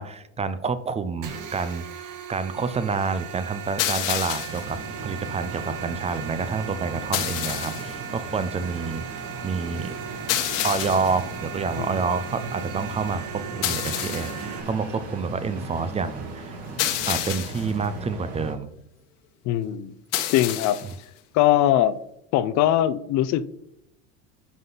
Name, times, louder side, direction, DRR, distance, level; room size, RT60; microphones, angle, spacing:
voice 1, 0.0-9.9 10.6-16.6 17.1-18.7, right 5 dB, 20° right, 0.5 m, -28 dB
sound 1, 1.2-14.6, right 8 dB, 65° right, 2.1 m, -38 dB
sound 2, 3.8-4.7 7.1-8.0 10.3-11.2 13.6-14.5 16.8-17.7 20.1-21.0, left 12 dB, 70° left, 1.4 m, -28 dB
sound 3, 4.5-18.5, right 3 dB, 50° right, 3.3 m, -37 dB
voice 2, 19.4-19.9 20.3-20.8 21.3-22.0 22.3-23.5, left 12 dB, 55° left, 0.7 m, -21 dB
11.0 x 5.8 x 4.0 m
supercardioid pair, 120°, 33 cm